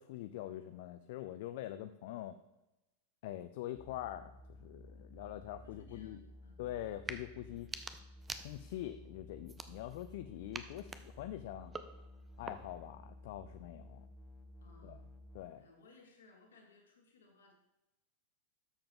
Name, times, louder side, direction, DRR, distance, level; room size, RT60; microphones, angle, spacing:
voice 1, 0.0-2.4 3.2-4.3 4.6-6.2 6.6-7.7 8.4-11.7 12.4-14.0 14.8-15.0 15.3-15.6, left 13 dB, 50° left, 11 dB, 0.4 m, -44 dB
sound 1, 3.7-15.4, left 1 dB, 10° left, 1.0 m, -55 dB
voice 2, 5.6-6.6 14.6-15.0 15.6-17.5, left 3 dB, 65° left, 1 dB, 2.1 m, -62 dB
sound 2, 6.9-7.2 7.6-8.9 9.4-10.1 10.5-12.9, right 4 dB, 15° right, 0.6 m, -47 dB
12.5 x 6.8 x 3.7 m, 0.96 s
figure-of-eight pair, 90°, 0 cm